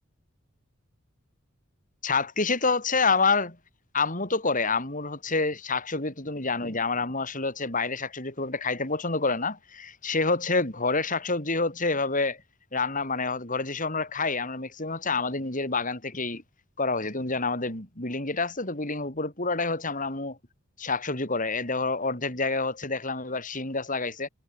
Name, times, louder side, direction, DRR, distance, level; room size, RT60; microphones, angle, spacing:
voice 1, 2.0-3.6 3.9-12.4 12.7-16.4 16.8-20.4 20.8-24.3, left 3 dB, 40° left, 5.1 m, -28 dB
head